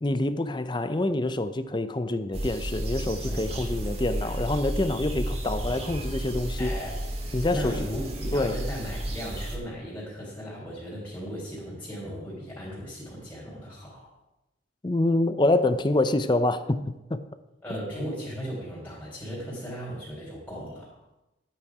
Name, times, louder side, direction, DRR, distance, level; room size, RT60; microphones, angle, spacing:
voice 1, 0.0-6.8 7.3-7.9 8.3-8.6 14.8-17.2, left 2 dB, 25° left, 0.5 m, -26 dB
sound 1, 2.3-9.6, right 1 dB, 35° right, 1.8 m, -32 dB
voice 2, 6.6-7.0 7.5-14.1 17.6-21.0, equal, 10° left, 3.7 m, -37 dB
12.0 x 8.9 x 4.8 m
head